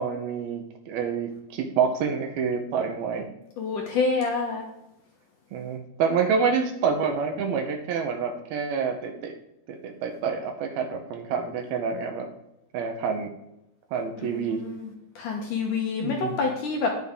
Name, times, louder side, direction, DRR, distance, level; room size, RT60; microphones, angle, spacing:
voice 1, 0.0-3.3 5.5-9.3 9.7-12.3 12.7-13.3 13.9-14.7 16.0-16.4, right 6 dB, 75° right, 5 dB, 2.7 m, -27 dB
voice 2, 3.6-4.7 14.2-16.9, left 4 dB, 65° left, 1 dB, 2.2 m, -28 dB
9.7 x 9.2 x 3.7 m, 0.85 s
omnidirectional pair, 4.7 m